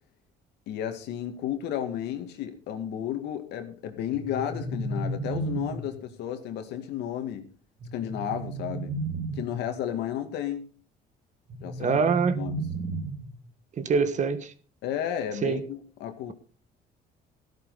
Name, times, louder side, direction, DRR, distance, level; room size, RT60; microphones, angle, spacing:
voice 1, 0.7-7.5 7.9-8.9 9.4-10.7 11.6-12.0 12.4-12.7 14.8-16.3, left 10 dB, 80° left, 2.2 m, -33 dB
sound 1, 4.1-6.1 7.8-9.7 11.5-13.5, right 2 dB, 75° right, 5.5 m, -33 dB
voice 2, 11.8-12.7 13.8-14.5 15.4-15.6, right 5 dB, 45° right, 1.5 m, -25 dB
14.0 x 12.5 x 4.1 m
cardioid pair, 110°, 17 cm